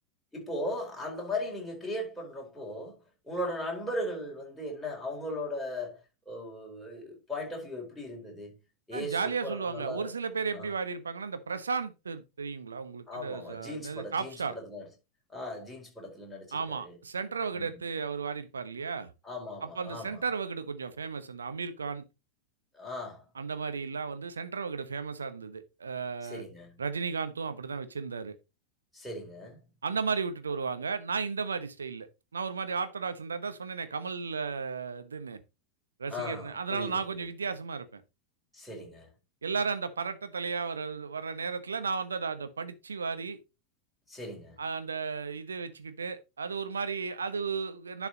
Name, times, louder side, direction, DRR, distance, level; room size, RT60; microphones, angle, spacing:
voice 1, 0.3-3.0 3.2-6.0 6.3-8.6 8.9-10.1 10.5-10.7 13.1-14.8 15.3-16.9 17.5-17.7 19.2-20.2 22.7-23.2 26.2-26.8 28.9-29.6 36.1-37.2 38.5-39.1 44.1-44.6, left 1 dB, 5° left, 4.4 m, -38 dB
voice 2, 8.9-14.6 16.5-19.1 19.6-22.0 23.3-26.4 26.8-28.4 29.8-32.1 32.3-35.4 36.0-38.0 39.4-43.4 44.6-48.1, right 5 dB, 70° right, 1.0 m, -34 dB
10.5 x 4.8 x 4.1 m
figure-of-eight pair, 90°, 0 cm